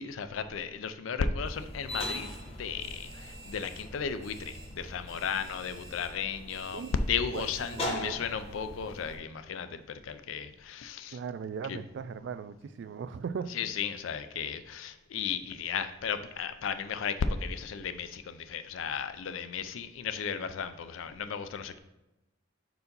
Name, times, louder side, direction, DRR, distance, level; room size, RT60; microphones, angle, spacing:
voice 1, 0.0-11.2 11.7-11.8 13.5-21.8, left 6 dB, 85° left, 11 dB, 0.4 m, -34 dB
sound 1, 1.5-9.2, left 1 dB, 30° left, 1.1 m, -41 dB
voice 2, 7.3-8.2 11.1-13.6, right 6 dB, 60° right, 13 dB, 0.3 m, -38 dB
4.7 x 3.8 x 5.2 m, 0.96 s
head